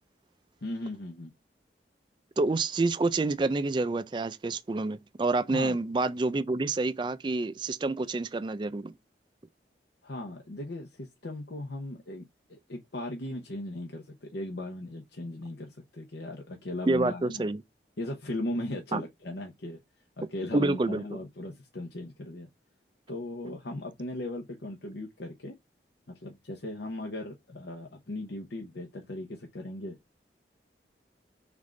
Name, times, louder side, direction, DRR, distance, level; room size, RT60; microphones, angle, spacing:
voice 1, 0.6-1.3 5.5-5.8 10.0-17.4 18.0-19.8 20.2-22.5 23.1-25.5 26.2-30.0, left 1 dB, 75° left, 0.9 m, -38 dB
voice 2, 2.4-8.9 16.9-17.6 18.9-19.0 20.5-21.0, right 3 dB, 25° right, 0.3 m, -28 dB
3.7 x 3.5 x 3.7 m
head